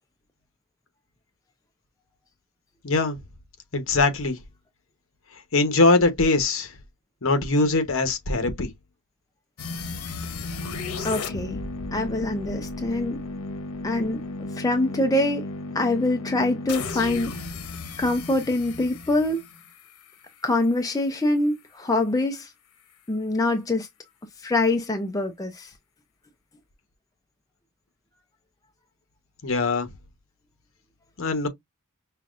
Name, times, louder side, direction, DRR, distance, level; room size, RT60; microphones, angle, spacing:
voice 1, 2.8-3.2 3.7-4.4 5.5-6.7 7.2-8.7 29.4-29.9 31.2-31.5, left 3 dB, 60° left, 1.0 m, -22 dB
sound 1, 9.6-20.5, left 3 dB, 90° left, 0.8 m, -34 dB
voice 2, 11.0-11.6 11.9-13.2 13.8-14.2 14.5-15.4 15.7-17.4 18.0-19.4 20.4-22.5 23.1-23.9 24.4-25.7, left 2 dB, 15° left, 0.5 m, -24 dB
5.6 x 2.3 x 2.4 m
head